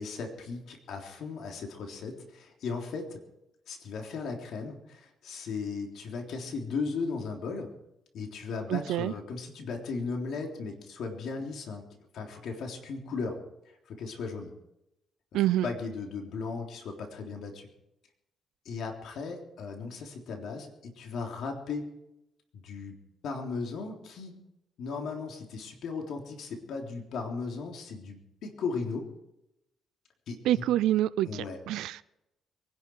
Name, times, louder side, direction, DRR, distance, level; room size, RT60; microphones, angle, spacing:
voice 1, 0.0-3.2 3.7-7.7 8.1-11.9 12.1-13.4 13.9-14.5 15.6-17.7 18.7-21.9 22.5-23.0 23.2-24.4 24.8-29.1 30.3-30.6 31.3-31.6, left 4 dB, 75° left, 3.5 m, -36 dB
voice 2, 8.7-9.1 15.3-15.7 30.5-32.0, right 13 dB, 85° right, 0.4 m, -27 dB
24.0 x 11.0 x 4.7 m
cardioid pair, 90°, 0 cm